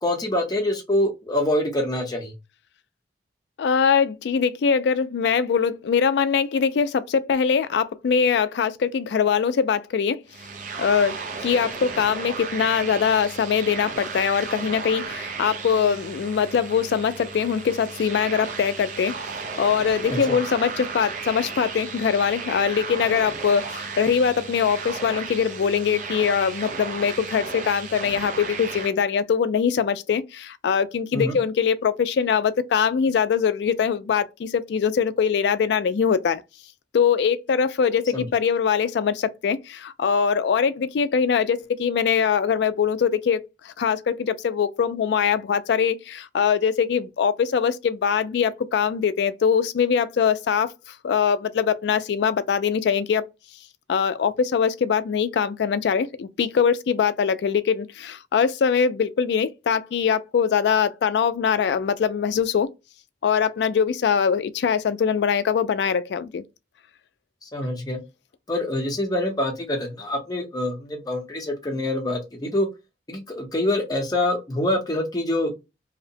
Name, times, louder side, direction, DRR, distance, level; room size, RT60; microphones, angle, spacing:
voice 1, 0.0-2.3 20.1-20.4 31.1-31.4 38.1-38.3 67.4-68.0 68.5-72.7 73.1-75.5, left 1 dB, 20° left, 0.7 m, -25 dB
voice 2, 3.6-10.2 10.8-19.2 19.6-36.4 36.9-50.7 51.0-53.2 53.9-62.7 63.2-66.4, left 6 dB, 70° left, 0.3 m, -22 dB
sound 1, 10.3-28.9, right 4 dB, 45° right, 0.5 m, -34 dB
2.7 x 2.1 x 2.6 m
head